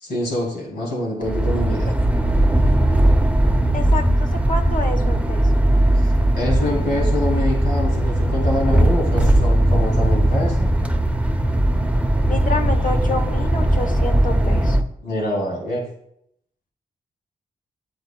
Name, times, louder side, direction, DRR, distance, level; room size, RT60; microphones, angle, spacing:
voice 1, 0.0-1.9 6.0-10.7 15.0-15.8, left 1 dB, 85° left, -3 dB, 2.9 m, -25 dB
sound 1, 1.2-14.8, right 1 dB, 10° right, 0.8 m, -18 dB
voice 2, 3.7-5.5 12.3-14.8, left 3 dB, 55° left, 4 dB, 1.2 m, -28 dB
10.5 x 7.9 x 2.4 m, 0.74 s
supercardioid pair, 45°, 17 cm